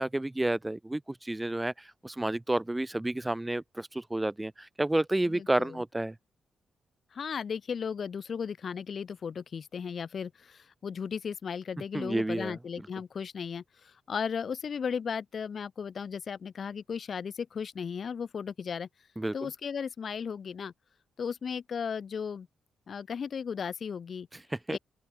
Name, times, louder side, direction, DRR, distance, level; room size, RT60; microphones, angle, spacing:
voice 1, 0.0-6.1 11.9-12.6 19.2-19.5 24.3-24.8, right 1 dB, 10° right, 1.0 m, -30 dB
voice 2, 5.3-5.8 7.1-13.6 14.1-18.9 19.3-20.7 21.2-22.5 22.9-24.3 24.7-24.8, left 6 dB, 45° left, 4.6 m, -35 dB
open air
wide cardioid pair, 155°, 0 cm